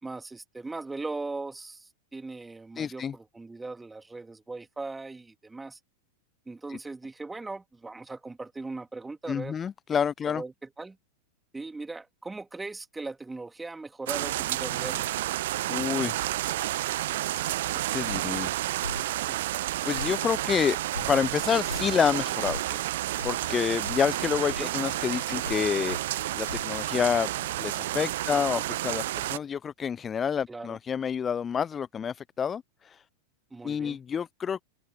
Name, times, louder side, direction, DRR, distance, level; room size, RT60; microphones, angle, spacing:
voice 1, 0.0-5.8 6.5-9.6 10.3-11.0 11.5-15.1 19.3-19.6 22.7-22.8 24.6-24.7 25.1-25.4 28.3-28.6 30.5-30.8 33.5-34.0, right 3 dB, 10° right, 3.5 m, -39 dB
voice 2, 2.8-3.1 6.7-6.8 9.3-10.4 15.7-16.2 17.9-18.6 19.8-22.6 23.2-33.0 33.6-34.6, left 7 dB, 20° left, 0.5 m, -28 dB
sound 1, 14.1-29.4, right 15 dB, 55° right, 1.4 m, -30 dB
sound 2, 18.1-18.2 18.8-19.0 19.9-20.2 20.9-21.1 21.7-21.8 22.4-22.6 23.2-23.4 23.8-24.0 24.5-24.7 25.4-25.6 25.9-26.0 26.5-26.6, left 2 dB, 85° left, 4.2 m, -37 dB
open air
figure-of-eight pair, 90°, 0 cm